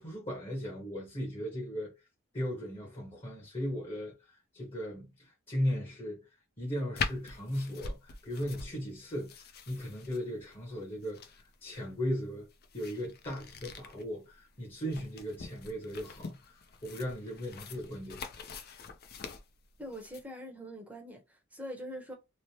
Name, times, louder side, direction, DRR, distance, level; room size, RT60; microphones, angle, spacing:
voice 1, 0.0-1.9 2.3-6.3 6.6-12.5 12.7-16.5 16.8-18.2, equal, 25° left, 0.9 m, -37 dB
sound 1, 7.0-20.2, left 5 dB, 50° left, 0.5 m, -43 dB
voice 2, 19.8-22.2, equal, 5° right, 0.8 m, -43 dB
3.1 x 2.0 x 2.8 m
head